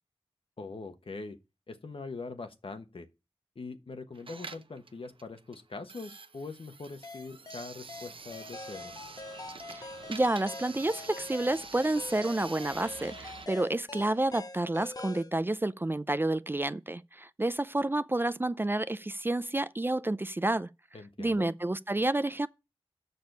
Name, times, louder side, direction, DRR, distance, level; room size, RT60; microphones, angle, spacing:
voice 1, 0.6-1.4 1.7-3.1 3.5-9.0 20.9-21.5, left 3 dB, 65° left, 1.1 m, -42 dB
sound 1, 4.1-13.5, right 4 dB, 60° right, 0.7 m, -47 dB
sound 2, 7.0-15.3, left 3 dB, 40° left, 0.6 m, -44 dB
voice 2, 9.7-20.7 21.2-22.5, right 2 dB, 20° right, 0.4 m, -30 dB
6.8 x 6.4 x 5.3 m
wide cardioid pair, 60°, 10 cm